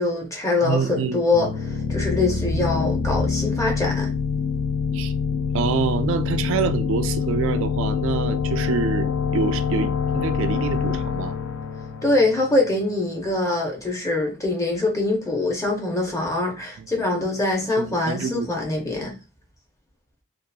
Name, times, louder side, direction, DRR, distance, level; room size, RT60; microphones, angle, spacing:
voice 1, 0.0-4.1 12.0-19.1, left 2 dB, 15° left, 0.5 m, -23 dB
voice 2, 0.6-1.2 4.9-5.1 5.5-11.4 16.8-16.9 17.8-18.5, right 5 dB, 60° right, 0.3 m, -26 dB
sound 1, 1.3-12.9, left 5 dB, 70° left, 0.4 m, -25 dB
2.7 x 2.3 x 2.2 m
head